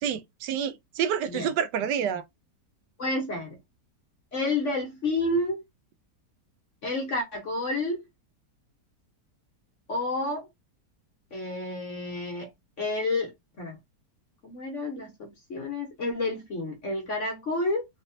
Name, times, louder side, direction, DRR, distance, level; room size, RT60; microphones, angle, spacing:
voice 1, 0.0-2.2, right 8 dB, 80° right, 1.2 m, -28 dB
voice 2, 3.0-3.6 4.3-5.6 6.8-8.0 9.9-10.5 11.3-12.5 12.8-13.3 13.6-13.8 14.4-17.9, left 2 dB, 50° left, 1.2 m, -30 dB
3.3 x 2.9 x 2.7 m
omnidirectional pair, 1.8 m